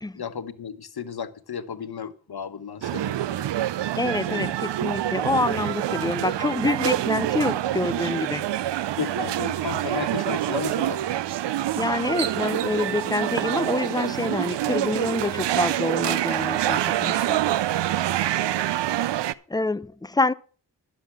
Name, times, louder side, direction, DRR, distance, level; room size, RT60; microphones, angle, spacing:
voice 1, 0.1-3.5 4.3-4.5 9.0-11.1, left 7 dB, 55° left, 1.1 m, -34 dB
sound 1, 2.8-19.3, right 12 dB, 70° right, 0.5 m, -26 dB
voice 2, 4.0-8.4 11.8-17.4 19.5-20.3, left 2 dB, 10° left, 0.5 m, -26 dB
11.5 x 7.3 x 5.9 m
cardioid pair, 45°, 45 cm